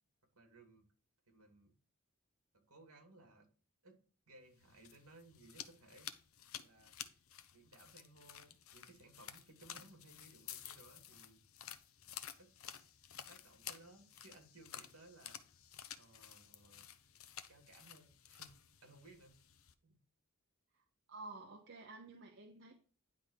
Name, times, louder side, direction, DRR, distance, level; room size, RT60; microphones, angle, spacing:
voice 1, 0.3-0.9 1.3-1.7 2.5-3.5 3.8-6.1 6.5-7.2 7.5-11.4 12.4-12.5 13.3-15.4 15.9-16.8 17.5-19.4 19.6-19.9, right 2 dB, 75° right, 4 dB, 2.5 m, -62 dB
sound 1, 4.5-19.7, left 10 dB, 70° left, 0.7 m, -53 dB
voice 2, 21.1-22.7, right 3 dB, 55° right, 2 dB, 0.9 m, -51 dB
10.5 x 3.7 x 6.5 m, 0.39 s
head